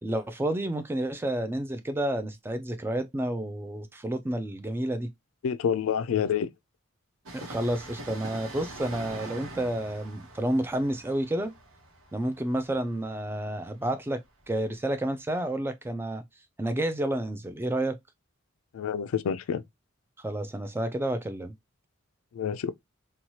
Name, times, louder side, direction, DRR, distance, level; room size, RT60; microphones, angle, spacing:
voice 1, 0.0-5.1 7.3-11.5 12.1-16.2 16.6-18.0 20.2-21.5, right 1 dB, 10° right, 0.3 m, -30 dB
voice 2, 5.4-6.5 18.7-19.6 22.3-22.7, left 7 dB, 80° left, 0.3 m, -28 dB
Train, 7.2-14.7 14.9-15.0, right 1 dB, 85° right, 1.0 m, -44 dB
2.8 x 2.3 x 2.9 m
head